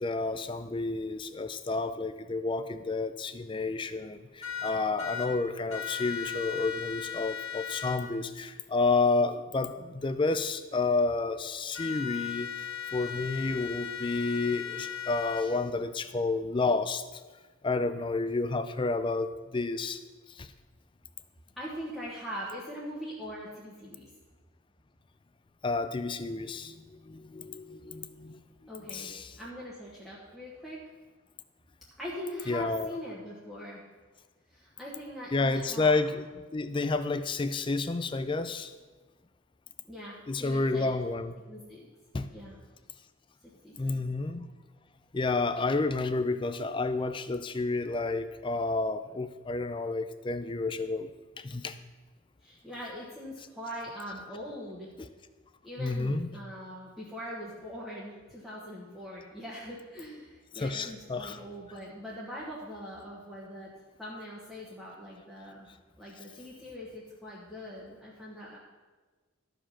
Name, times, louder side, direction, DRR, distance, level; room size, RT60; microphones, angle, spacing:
voice 1, 0.0-12.7 12.9-17.0 17.6-20.0 20.4-20.5 25.6-28.4 28.9-29.3 32.5-32.9 35.3-36.3 36.5-38.7 40.3-41.3 42.1-42.3 43.8-44.5 45.1-51.1 51.4-51.8 55.0-55.1 55.8-56.3 60.6-61.4, left 3 dB, 25° left, 11 dB, 0.4 m, -30 dB
sound 1, 4.4-5.3 5.7-8.0 11.7-15.4, left 8 dB, 80° left, 1.7 m, -37 dB
voice 2, 21.6-24.1 28.7-30.8 32.0-33.8 34.5-36.0 39.9-40.9 41.5-41.9 42.3-42.6 43.4-44.0 52.4-54.9 55.6-63.7 64.0-65.7 66.0-68.6, equal, ahead, -7 dB, 1.3 m, -42 dB
13.5 x 5.1 x 5.7 m, 1.3 s
head